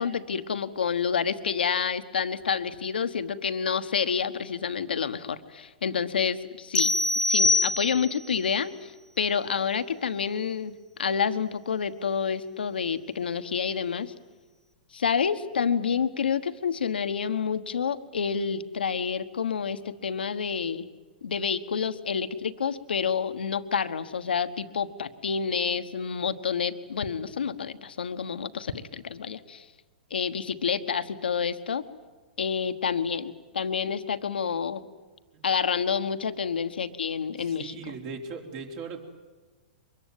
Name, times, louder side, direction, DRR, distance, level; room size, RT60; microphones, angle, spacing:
voice 1, 0.0-6.9 7.3-10.7 11.0-14.1 14.9-20.9 21.2-29.6 30.1-31.8 32.4-34.8 35.4-37.9, left 6 dB, 90° left, 10 dB, 1.2 m, -28 dB
sound 1, 6.7-8.3, left 2 dB, 15° left, 1.2 m, -24 dB
voice 2, 37.4-39.0, right 5 dB, 45° right, 3 dB, 3.9 m, -39 dB
23.5 x 22.0 x 9.3 m, 1.3 s
hypercardioid pair, 130°, 5 cm